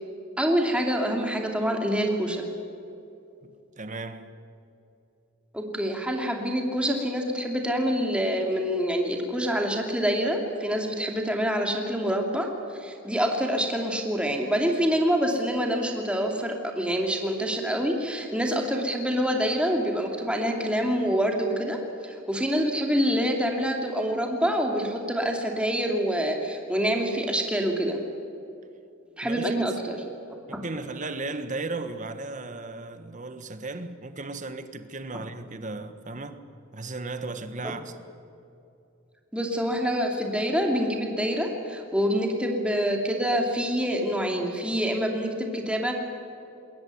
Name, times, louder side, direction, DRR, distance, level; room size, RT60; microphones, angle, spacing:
voice 1, 0.4-2.5 5.5-12.5 12.7-21.8 22.0-28.0 29.2-30.0 30.5-30.6 39.3-45.9, equal, 5° right, 2.7 m, -26 dB
voice 2, 3.4-4.3 29.2-29.8 30.5-36.4 36.7-37.9, right 3 dB, 40° right, 1.4 m, -36 dB
21.5 x 18.5 x 9.4 m
head